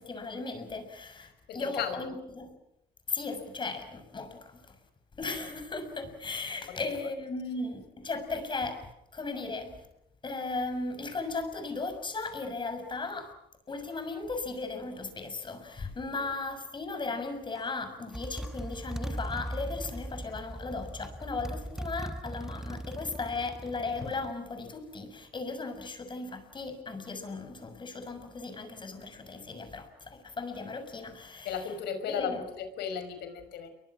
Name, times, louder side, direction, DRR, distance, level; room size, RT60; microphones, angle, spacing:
voice 1, 0.0-2.6 3.1-4.7 5.2-9.9 10.2-13.3 13.7-31.7 32.1-32.4, left 3 dB, 30° left, 6.6 m, -36 dB
voice 2, 1.5-2.0 6.8-6.9 31.4-33.7, left 7 dB, 75° left, 5.6 m, -35 dB
Motorcycle, 17.6-17.7 18.1-24.3, right 1 dB, 5° right, 1.1 m, -39 dB
29.5 x 24.0 x 6.3 m
cardioid pair, 110°, 17 cm